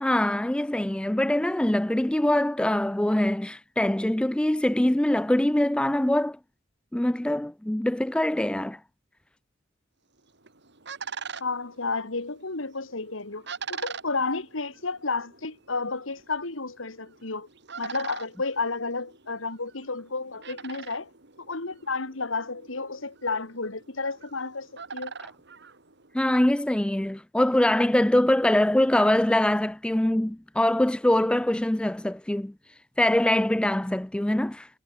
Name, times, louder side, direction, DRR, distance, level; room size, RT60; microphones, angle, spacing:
voice 1, 0.0-6.4 6.9-8.8 26.1-32.5 33.0-34.7, left 1 dB, 5° left, 0.3 m, -23 dB
sound 1, 10.2-26.4, right 5 dB, 60° right, 3.8 m, -43 dB
voice 2, 11.4-17.5 17.8-21.1 21.5-25.1, left 3 dB, 80° left, 2.4 m, -32 dB
head